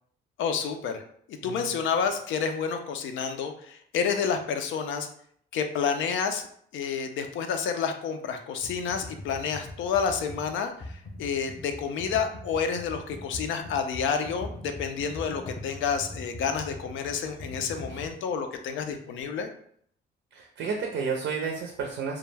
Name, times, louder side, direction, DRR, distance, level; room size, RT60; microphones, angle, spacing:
voice 1, 0.4-1.0 1.4-5.1 5.5-6.4 6.7-19.5, left 6 dB, 75° left, 6 dB, 0.4 m, -29 dB
Computer keyboard, 8.6-18.1, left 1 dB, 30° left, 0.6 m, -41 dB
voice 2, 20.3-22.2, right 5 dB, 70° right, 1 dB, 0.5 m, -31 dB
2.2 x 2.1 x 3.2 m, 0.64 s
cardioid pair, 90°, 20 cm